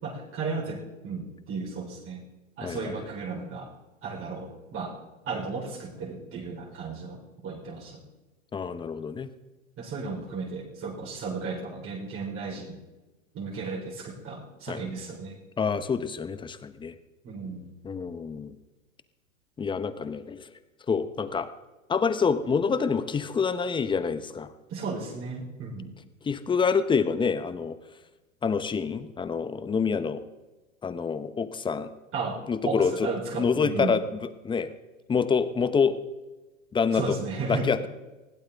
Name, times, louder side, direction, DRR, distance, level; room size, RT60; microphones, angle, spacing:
voice 1, 0.0-2.2 2.6-3.7 4.0-4.9 5.3-8.0 9.8-12.8 13.3-15.4 17.2-17.7 24.7-25.9 32.1-32.4 32.6-34.0 36.9-37.7, right 4 dB, 30° right, -2 dB, 4.2 m, -34 dB
voice 2, 2.6-3.1 8.5-9.3 14.7-14.9 15.6-16.9 17.8-18.5 19.6-20.5 20.9-21.5 21.9-24.5 26.2-27.8 28.4-30.2 30.8-31.9 32.5-33.1 33.4-34.7 35.1-36.0 36.7-37.2 37.5-37.9, left 5 dB, 10° left, 12 dB, 0.9 m, -27 dB
20.5 x 16.0 x 3.6 m, 1.1 s
hypercardioid pair, 115°, 40 cm